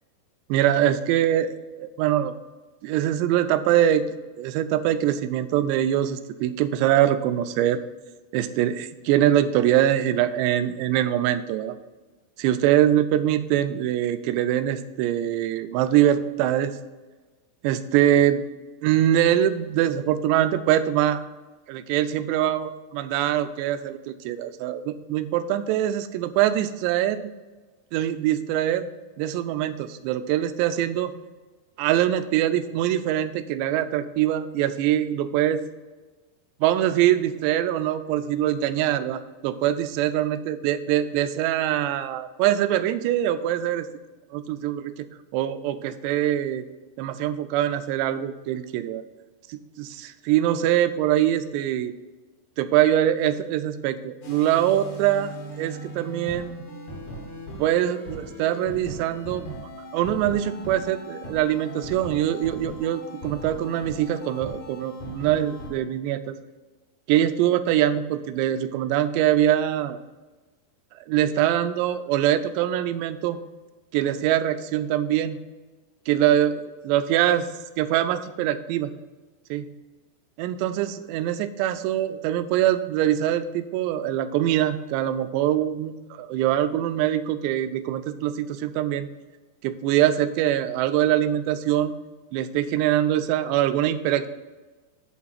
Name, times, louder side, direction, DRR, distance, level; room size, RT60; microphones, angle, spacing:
voice 1, 0.5-2.3 2.8-4.0 4.4-7.8 8.3-11.8 12.4-16.8 17.6-18.4 18.8-21.2 21.7-27.3 27.9-28.9 29.2-31.1 31.8-35.6 36.6-43.9 44.3-45.1 45.3-46.7 47.0-49.0 49.5-51.9 52.6-56.6 57.6-59.6 59.9-66.4 67.1-70.0 71.1-73.4 73.9-75.4 76.1-77.5 77.8-78.9 79.5-79.7 80.4-89.1 89.6-91.9 92.3-94.3, right 11 dB, 85° right, 11 dB, 2.7 m, -23 dB
sound 1, 54.2-65.7, equal, 55° left, 2.4 m, -39 dB
11.0 x 4.0 x 5.8 m, 1.2 s
omnidirectional pair, 5.0 m